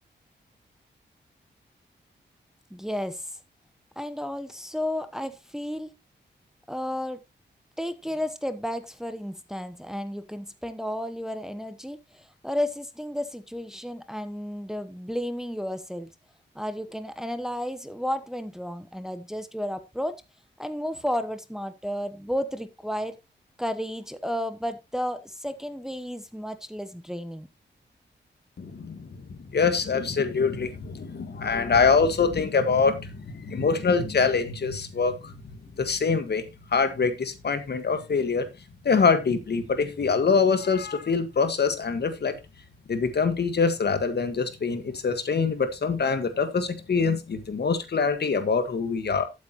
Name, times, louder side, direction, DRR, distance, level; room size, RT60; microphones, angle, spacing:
voice 1, 2.7-3.2 4.0-5.9 6.7-7.2 7.8-16.1 16.5-20.2 20.6-23.1 23.6-27.5, equal, 5° right, 1.0 m, -32 dB
voice 2, 28.6-35.3 35.8-36.4 36.7-38.5 38.8-42.3 42.9-49.3, left 5 dB, 60° left, 1.7 m, -24 dB
12.0 x 8.4 x 3.0 m
cardioid pair, 80°, 19 cm